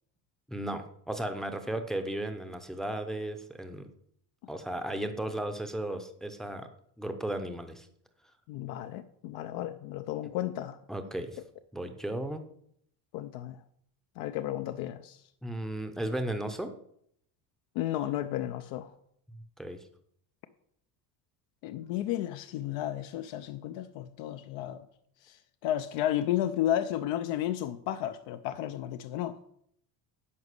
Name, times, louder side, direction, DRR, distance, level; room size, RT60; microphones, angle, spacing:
voice 1, 0.5-3.9 4.5-6.7 7.0-7.9 10.9-11.4 11.7-12.4 15.4-16.7 19.3-19.9, right 1 dB, ahead, 0.6 m, -35 dB
voice 2, 8.5-10.8 13.1-13.6 14.2-15.2 17.8-18.9 21.6-24.8 25.2-29.4, left 12 dB, 75° left, 0.8 m, -33 dB
11.0 x 5.0 x 8.1 m
cardioid pair, 165°, 45 cm